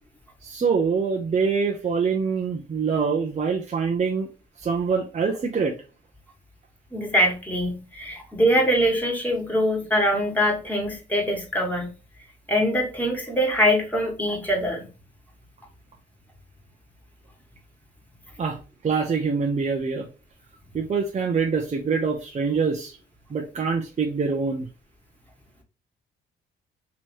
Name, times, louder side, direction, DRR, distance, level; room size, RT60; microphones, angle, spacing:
voice 1, 0.4-4.3 4.6-5.8 18.4-18.6 18.8-20.1 20.7-23.0 23.3-24.7, right 5 dB, 35° right, 0 dB, 0.7 m, -25 dB
voice 2, 6.9-11.9 12.5-14.9, equal, 10° left, -1 dB, 1.7 m, -23 dB
3.1 x 3.0 x 4.5 m, 0.33 s
cardioid pair, 90°, 20 cm